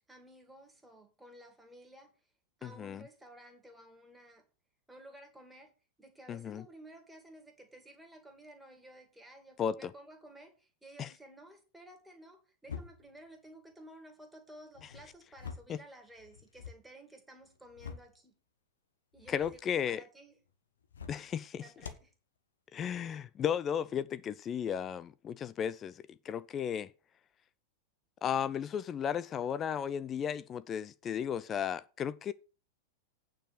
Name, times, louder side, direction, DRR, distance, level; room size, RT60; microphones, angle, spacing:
voice 1, 0.1-2.1 2.6-4.5 4.9-5.7 6.0-18.4 19.1-20.4 21.6-22.1, right 1 dB, 5° right, 2.5 m, -54 dB
voice 2, 2.6-3.0 6.3-6.6 9.6-9.9 11.0-11.1 15.7-15.8 19.3-20.0 21.1-21.6 22.7-26.9 28.2-32.3, left 8 dB, 25° left, 0.4 m, -34 dB
sound 1, 12.7-13.2 14.7-15.8 16.2-16.8 17.4-18.2 19.1-19.6 20.8-21.3 21.8-22.1, left 6 dB, 70° left, 1.1 m, -46 dB
8.9 x 5.0 x 6.8 m
figure-of-eight pair, 90°, 0 cm